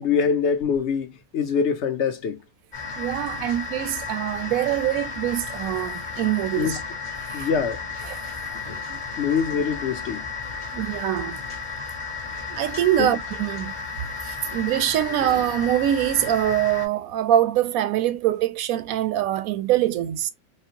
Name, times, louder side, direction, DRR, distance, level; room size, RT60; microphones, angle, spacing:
voice 1, 0.0-2.4 6.6-6.8 7.3-7.8 8.7-8.8 9.2-10.3 13.0-13.1, left 6 dB, 60° left, 1.0 m, -24 dB
sound 1, 2.7-16.9, left 5 dB, 20° left, 1.1 m, -33 dB
voice 2, 3.0-6.8 7.3-7.5 8.0-8.6 8.9-9.0 10.7-11.4 12.5-13.7 14.2-20.3, right 12 dB, 80° right, 1.0 m, -24 dB
4.3 x 2.0 x 2.8 m
omnidirectional pair, 1.5 m